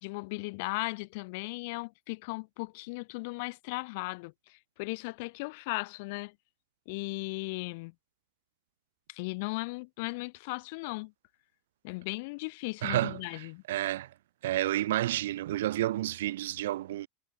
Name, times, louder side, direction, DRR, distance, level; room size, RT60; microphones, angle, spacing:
voice 1, 0.0-6.3 6.9-7.9 9.1-11.1 11.8-13.6, left 27 dB, 60° left, 0.3 m, -37 dB
voice 2, 12.8-14.1 14.4-17.1, right 14 dB, 85° right, 0.4 m, -30 dB
supercardioid pair, 135°, 0 cm